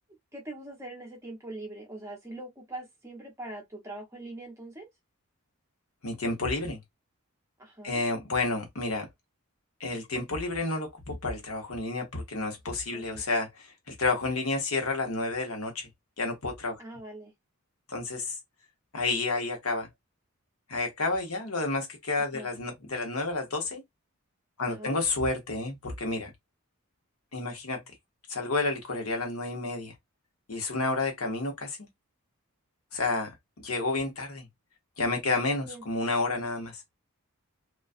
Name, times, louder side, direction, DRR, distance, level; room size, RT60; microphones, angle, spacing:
voice 1, 0.3-4.9 7.6-8.0 12.9-13.2 16.8-17.3 22.2-22.5 24.7-25.0 35.7-35.8, right 2 dB, 15° right, 0.8 m, -42 dB
voice 2, 6.0-6.8 7.8-9.1 9.8-15.9 16.2-16.8 17.9-18.4 18.9-19.9 20.7-23.8 24.6-26.3 27.3-27.8 28.3-29.9 30.5-31.9 32.9-34.5 35.0-36.8, left 3 dB, 70° left, 0.9 m, -30 dB
2.4 x 2.3 x 2.4 m
head